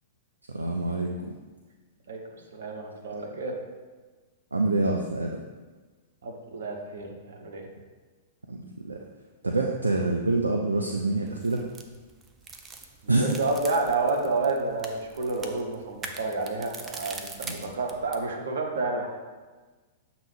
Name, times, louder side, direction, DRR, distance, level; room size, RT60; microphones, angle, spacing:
voice 1, 0.5-1.1 4.5-5.4 8.5-9.0 9.4-11.6 13.1-13.4 17.4-17.7, right 2 dB, 75° right, 2 dB, 0.5 m, -26 dB
voice 2, 2.1-3.5 6.2-7.7 13.2-19.1, right 3 dB, 60° right, 2 dB, 1.0 m, -30 dB
sound 1, 11.3-18.3, right 4 dB, 20° right, 0.5 m, -43 dB
7.5 x 3.0 x 4.9 m, 1.3 s
figure-of-eight pair, 100°, 0 cm